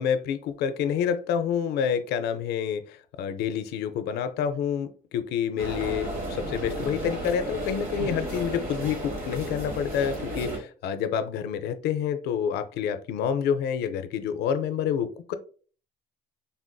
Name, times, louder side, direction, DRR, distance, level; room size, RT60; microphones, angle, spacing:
voice 1, 0.0-15.3, left 8 dB, 80° left, 0.4 m, -28 dB
sound 1, 5.6-10.6, right 1 dB, 55° right, 1.1 m, -33 dB
3.4 x 2.5 x 2.2 m
cardioid pair, 110°, 17 cm